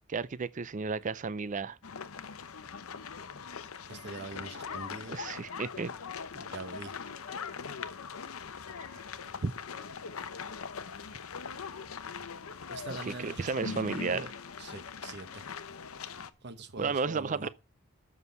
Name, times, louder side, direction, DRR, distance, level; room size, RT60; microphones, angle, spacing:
voice 1, 0.1-1.8 5.1-5.9 9.4-9.5 13.1-14.3 16.8-17.5, right 4 dB, 35° right, 0.4 m, -33 dB
sound 1, 1.8-16.3, left 6 dB, 90° left, 0.8 m, -41 dB
voice 2, 3.9-5.2 6.3-6.9 12.7-14.3 14.6-15.5 16.4-17.5, right 3 dB, 55° right, 1.0 m, -43 dB
7.3 x 6.2 x 6.7 m
head